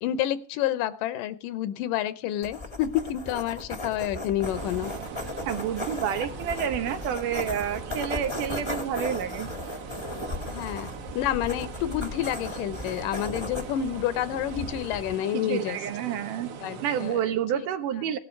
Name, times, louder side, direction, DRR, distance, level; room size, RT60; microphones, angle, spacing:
voice 1, 0.0-4.9 10.5-10.9 11.2-15.8 16.6-17.2 17.5-17.7, left 11 dB, 85° left, 15 dB, 2.5 m, -29 dB
sound 1, 2.4-15.1, left 2 dB, 20° left, 0.6 m, -36 dB
sound 2, 4.3-17.3, right 7 dB, 55° right, 1.9 m, -41 dB
voice 2, 5.5-9.5 15.3-16.5 16.8-18.2, right 9 dB, 75° right, 9 dB, 2.7 m, -29 dB
17.5 x 12.0 x 4.6 m, 0.35 s
omnidirectional pair, 3.8 m